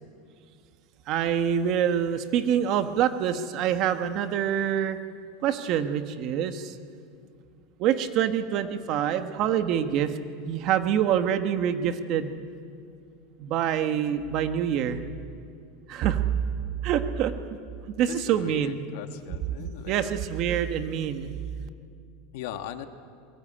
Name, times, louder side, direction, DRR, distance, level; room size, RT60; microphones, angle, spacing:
voice 1, 1.1-5.0 5.4-6.8 7.8-10.2 10.4-12.3 13.4-15.0 15.9-16.4 16.8-17.3 18.0-18.8 19.6-21.3, right 9 dB, 40° right, 8 dB, 1.5 m, -26 dB
voice 2, 18.3-20.1 22.3-22.9, left 10 dB, 65° left, 8 dB, 1.7 m, -39 dB
27.0 x 22.0 x 8.9 m, 2.3 s
supercardioid pair, 155°, 0 cm